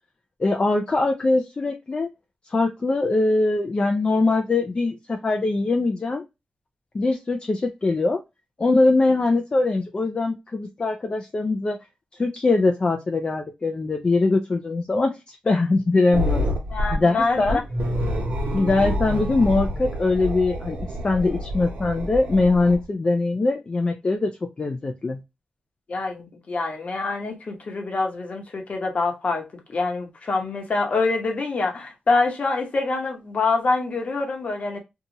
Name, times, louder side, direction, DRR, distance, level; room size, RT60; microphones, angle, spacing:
voice 1, 0.4-2.1 2.5-6.2 6.9-8.2 8.6-11.8 12.2-15.2 15.4-16.5 16.9-17.6 18.5-20.8 21.0-24.3 24.6-25.2, left 3 dB, 35° left, 0.4 m, -22 dB
sound 1, 16.1-22.9, equal, 65° right, 1.0 m, -28 dB
voice 2, 16.7-17.6 25.9-34.8, left 3 dB, 55° left, 1.0 m, -25 dB
2.7 x 2.4 x 2.8 m
cardioid pair, 80°, 3 cm